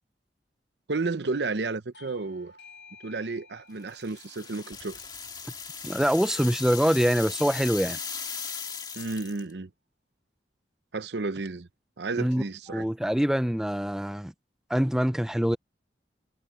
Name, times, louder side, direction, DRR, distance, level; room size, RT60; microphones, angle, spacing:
voice 1, 0.9-2.5 3.0-5.0 9.0-9.7 10.9-11.7 12.0-12.9, right 3 dB, 70° right, 0.8 m, -32 dB
Bell / Doorbell, 1.9-7.0, left 3 dB, 75° left, 1.6 m, -55 dB
sound 1, 3.9-9.5, left 6 dB, 25° left, 1.9 m, -38 dB
sound 2, 4.7-8.7, equal, 35° right, 7.6 m, -64 dB
voice 2, 5.8-8.0 12.2-12.4 12.7-14.3 14.7-15.6, equal, 5° right, 0.4 m, -24 dB
head